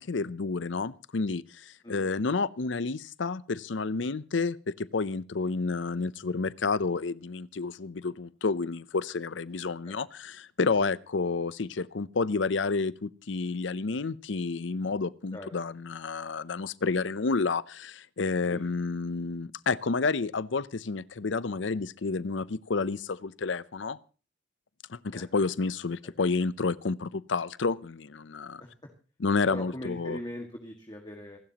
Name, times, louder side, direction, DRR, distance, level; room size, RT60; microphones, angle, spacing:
voice 1, 0.0-24.0 24.9-28.6 29.2-30.2, left 4 dB, 80° left, 0.7 m, -30 dB
voice 2, 29.5-31.4, left 1 dB, 20° left, 1.9 m, -40 dB
27.0 x 12.5 x 3.0 m
head